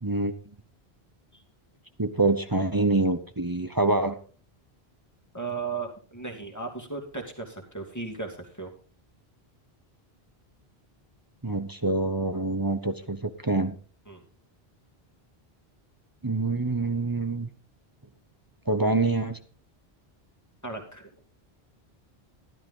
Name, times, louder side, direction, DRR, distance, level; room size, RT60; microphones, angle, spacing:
voice 1, 0.0-0.3 2.0-4.2 11.4-13.8 16.2-17.5 18.7-19.4, right 2 dB, 20° right, 8 dB, 0.9 m, -26 dB
voice 2, 5.3-8.7 14.1-14.2 20.6-21.1, right 4 dB, 15° left, 2 dB, 2.6 m, -36 dB
13.5 x 12.0 x 3.8 m, 0.39 s
omnidirectional pair, 1.1 m